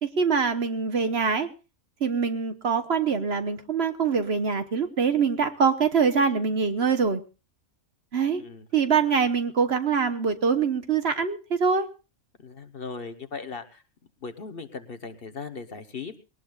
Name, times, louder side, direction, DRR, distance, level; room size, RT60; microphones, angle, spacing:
voice 1, 0.0-1.5 2.0-7.2 8.1-8.4 8.7-11.9, right 5 dB, 50° right, 9 dB, 1.2 m, -24 dB
voice 2, 12.4-13.8 14.2-16.2, left 5 dB, 45° left, 10 dB, 1.2 m, -38 dB
21.5 x 18.5 x 2.4 m, 0.31 s
omnidirectional pair, 1.4 m